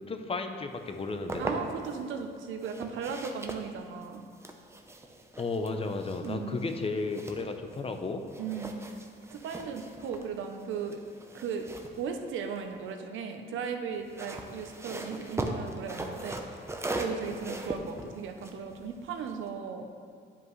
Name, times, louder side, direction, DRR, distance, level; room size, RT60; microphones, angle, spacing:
voice 1, 0.1-1.4 5.4-8.2, left 3 dB, 30° left, 6 dB, 0.6 m, -33 dB
sound 1, 0.9-2.0 2.6-8.0 8.3-12.9 13.9-19.5, right 1 dB, 15° right, 0.7 m, -40 dB
voice 2, 1.4-4.2 6.2-6.6 8.4-8.8 9.3-11.0 11.3-16.7 17.0-19.9, right 6 dB, 75° right, 5 dB, 0.7 m, -37 dB
10.0 x 5.1 x 3.2 m, 2.1 s
cardioid pair, 90°, 20 cm